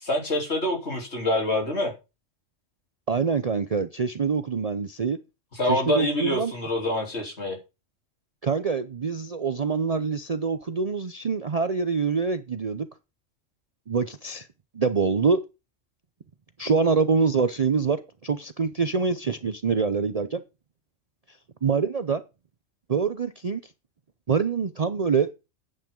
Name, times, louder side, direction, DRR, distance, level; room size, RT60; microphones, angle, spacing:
voice 1, 0.0-1.9 5.6-7.6, left 1 dB, 55° left, 3.8 m, -26 dB
voice 2, 3.1-5.2 5.6-6.5 8.4-12.9 13.9-14.5 14.7-15.4 16.6-20.4 21.6-22.2 22.9-23.7 24.3-25.3, right 5 dB, 40° right, 0.6 m, -25 dB
10.5 x 9.1 x 3.8 m
omnidirectional pair, 1.3 m